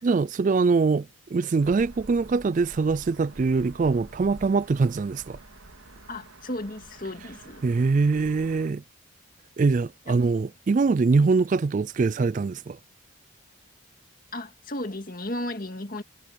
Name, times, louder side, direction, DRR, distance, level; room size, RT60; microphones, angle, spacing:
voice 1, 0.0-5.4 7.6-8.8 9.6-12.8, right 4 dB, 35° right, 0.3 m, -23 dB
sound 1, 1.6-8.7, right 1 dB, 90° right, 3.5 m, -48 dB
voice 2, 6.1-7.6 10.1-10.2 11.2-11.3 14.3-16.0, left 1 dB, 40° left, 2.1 m, -34 dB
head